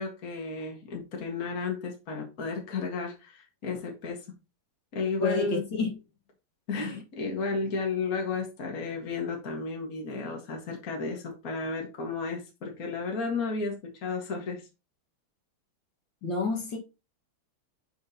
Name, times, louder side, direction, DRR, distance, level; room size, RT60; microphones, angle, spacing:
voice 1, 0.0-4.2 4.9-5.7 6.7-14.6, left 4 dB, 45° left, 2.0 m, -33 dB
voice 2, 5.2-6.0 6.7-7.0 16.2-16.8, left 3 dB, 60° left, 2.4 m, -29 dB
6.9 x 6.5 x 2.9 m
omnidirectional pair, 2.4 m